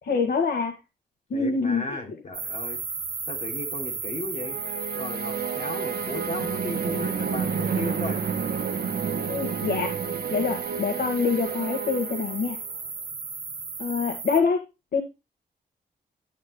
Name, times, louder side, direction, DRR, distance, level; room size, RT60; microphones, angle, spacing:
voice 1, 0.0-0.7 1.3-2.0 9.3-9.9 10.3-12.6 13.8-14.6 14.9-15.0, left 5 dB, 75° left, 1.8 m, -25 dB
voice 2, 1.3-2.8 3.3-4.6 4.9-8.2, left 2 dB, 45° left, 3.6 m, -35 dB
sound 1, 2.3-14.4, right 4 dB, 35° right, 1.5 m, -35 dB
sound 2, 4.4-12.8, right 7 dB, 75° right, 1.2 m, -30 dB
11.0 x 10.0 x 2.3 m
wide cardioid pair, 150°, 16 cm